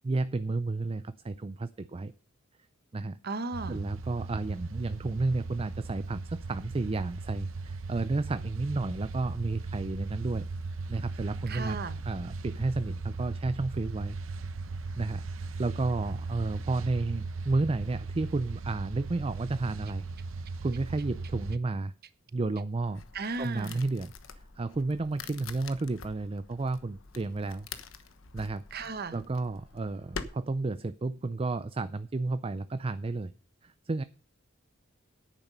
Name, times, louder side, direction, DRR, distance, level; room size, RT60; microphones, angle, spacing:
voice 1, 0.0-2.1 2.9-3.2 3.7-10.4 10.9-11.8 12.0-14.2 15.0-20.1 20.6-21.9 22.3-23.0 23.4-24.1 24.6-27.7 28.3-28.6 29.1-33.3 33.6-34.0, right 3 dB, 30° right, 13 dB, 0.4 m, -32 dB
voice 2, 3.2-3.8 11.5-12.0 23.1-23.8 28.7-29.2, right 3 dB, 50° right, 12 dB, 1.1 m, -35 dB
sound 1, 3.5-21.6, right 3 dB, 80° right, 0.9 m, -38 dB
sound 2, 22.8-30.2, left 5 dB, 80° left, 1.2 m, -46 dB
10.5 x 9.0 x 5.5 m, 0.40 s
head